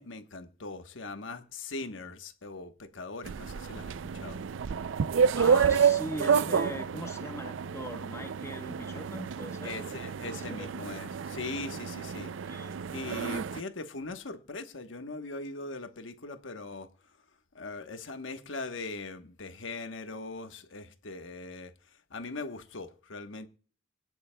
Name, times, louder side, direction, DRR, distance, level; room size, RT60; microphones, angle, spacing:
voice 1, 0.0-4.4 9.6-12.3 12.9-16.9 17.5-21.7 22.1-23.5, left 3 dB, 80° left, 1.2 m, -40 dB
sound 1, 3.2-13.6, right 6 dB, 75° right, 0.4 m, -29 dB
voice 2, 5.3-9.7 10.2-10.8 12.5-12.7, left 1 dB, 15° left, 1.0 m, -41 dB
25.5 x 9.4 x 2.3 m
head